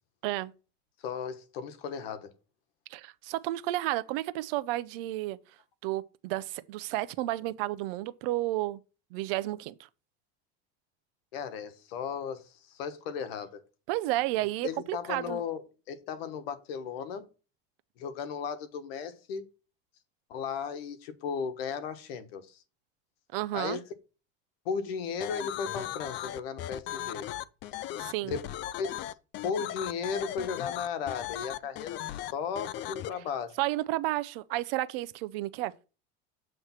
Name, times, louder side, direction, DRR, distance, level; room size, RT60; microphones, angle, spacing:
voice 1, 1.0-2.3 11.3-13.6 14.6-15.6 15.9-17.3 18.0-19.5 20.3-22.6 23.5-23.8 24.6-27.3 28.2-29.1 29.4-32.1 32.3-33.6, left 6 dB, 85° left, 1.2 m, -35 dB
voice 2, 2.9-5.4 5.8-8.8 9.1-9.9 13.9-15.4 23.3-23.8 28.0-28.4 33.6-35.9, right 16 dB, 75° right, 0.6 m, -32 dB
sound 1, 25.2-33.1, left 13 dB, 40° left, 0.4 m, -37 dB
7.7 x 3.3 x 5.7 m
supercardioid pair, 135°, 29 cm